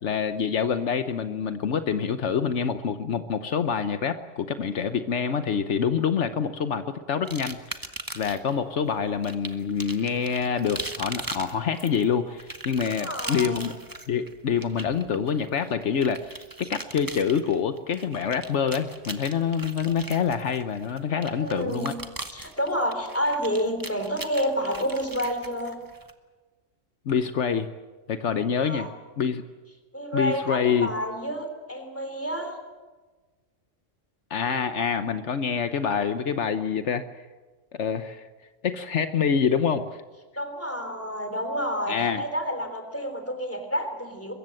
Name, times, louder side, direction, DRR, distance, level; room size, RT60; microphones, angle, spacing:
voice 1, 0.0-7.6 8.1-13.7 14.1-21.9 27.1-27.7 28.1-28.9 29.2-29.4 30.1-30.9 34.3-37.1 37.7-38.3 38.6-40.0 41.9-42.2, left 7 dB, 75° left, 10 dB, 1.2 m, -26 dB
sound 1, 7.3-8.5 9.2-26.1, right 2 dB, 20° right, 1.3 m, -39 dB
voice 2, 12.8-13.7 21.3-21.9 22.3-25.8 28.6-28.9 29.9-32.5 40.3-44.3, equal, 10° left, 6 dB, 3.4 m, -29 dB
23.0 x 22.0 x 7.8 m, 1.3 s
omnidirectional pair, 1.2 m